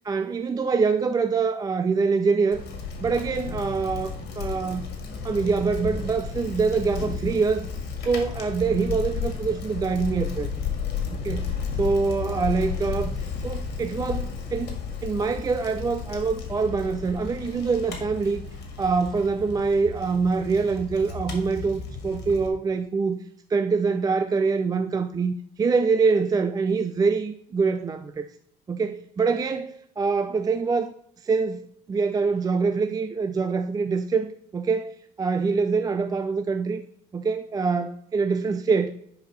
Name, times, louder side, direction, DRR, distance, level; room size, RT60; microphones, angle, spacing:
voice 1, 0.1-2.6 3.0-4.8 5.2-7.7 8.0-10.5 11.2-11.4 11.7-13.1 13.4-14.8 15.0-18.4 18.8-23.2 23.5-28.3 28.7-30.9 31.2-31.6 31.9-36.8 37.1-38.9, right 4 dB, 20° right, 0.4 m, -24 dB
Bicycle, 2.5-22.5, left 6 dB, 75° left, 1.9 m, -33 dB
10.5 x 4.7 x 3.3 m
cardioid pair, 110°, 17 cm